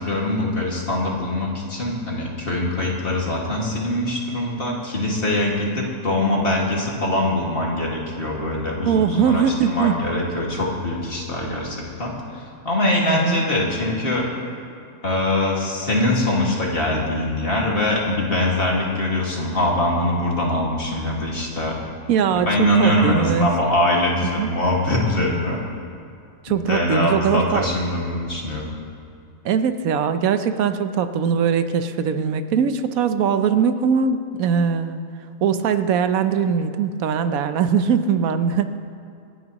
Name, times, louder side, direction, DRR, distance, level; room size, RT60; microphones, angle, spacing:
voice 1, 0.0-14.3 15.0-21.8 22.4-25.6 26.5-28.7, left 1 dB, 45° left, -3 dB, 2.2 m, -23 dB
voice 2, 8.9-10.0 13.1-13.4 22.1-23.5 24.2-24.5 26.4-27.7 29.4-35.0 35.4-38.8, right 7 dB, 85° right, 10 dB, 1.2 m, -21 dB
27.0 x 10.0 x 3.0 m, 2.5 s
omnidirectional pair, 1.4 m